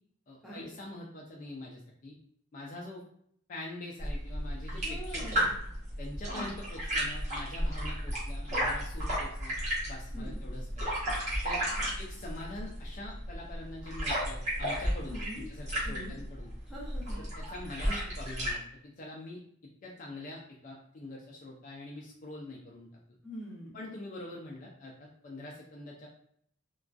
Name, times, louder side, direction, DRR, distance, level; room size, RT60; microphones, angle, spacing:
voice 1, 0.3-2.1 2.5-3.0 3.5-5.5 6.0-9.6 9.9-10.9 11.4-11.6 12.0-16.5 17.2-22.9 23.7-26.1, left 1 dB, 40° left, -2 dB, 0.3 m, -44 dB
sound 1, 4.0-18.6, equal, 35° right, 0.9 m, -34 dB
voice 2, 4.8-5.5 6.3-6.5 10.1-10.4 11.7-11.9 15.0-15.5 15.8-16.2 16.7-17.2 23.2-23.7, equal, ahead, -7 dB, 0.7 m, -44 dB
2.3 x 2.2 x 2.4 m, 0.66 s
head